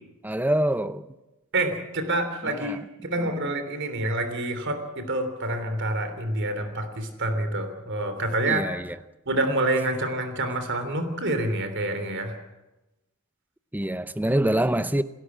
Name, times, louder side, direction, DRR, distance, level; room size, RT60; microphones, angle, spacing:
voice 1, 0.2-1.1 2.4-2.8 3.2-3.3 8.5-9.0 13.7-15.0, right 1 dB, 10° right, 0.7 m, -25 dB
voice 2, 1.5-8.6 9.2-12.4, right 2 dB, 55° right, 3.3 m, -27 dB
28.5 x 13.0 x 8.6 m
head